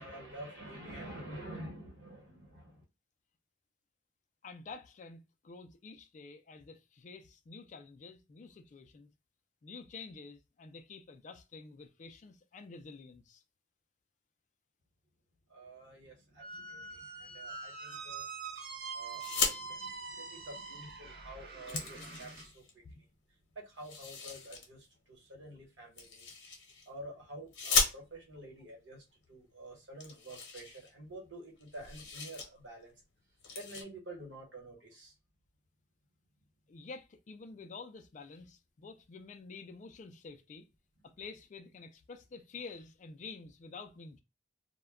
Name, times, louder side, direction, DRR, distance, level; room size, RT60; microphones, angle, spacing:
voice 1, 0.0-2.8 15.5-18.3 18.9-23.0 23.5-26.4 26.8-32.9 33.6-35.1, right 1 dB, 80° right, 1.2 m, -49 dB
voice 2, 4.4-9.1 9.6-13.4 21.7-21.8 22.8-23.0 36.7-40.7 41.0-44.2, left 4 dB, 40° left, 0.3 m, -49 dB
Squeak, 16.4-22.5, right 4 dB, 55° right, 0.7 m, -44 dB
sound 1, 19.1-19.6 20.9-21.0 21.3-22.7 23.8-24.7 26.0-26.9 27.5-28.4 29.3-29.4 29.6-29.7 30.0-31.3 31.6-32.5 32.8-33.0 33.4-33.8, left 4 dB, 85° left, 0.7 m, -35 dB
2.2 x 2.2 x 3.4 m
head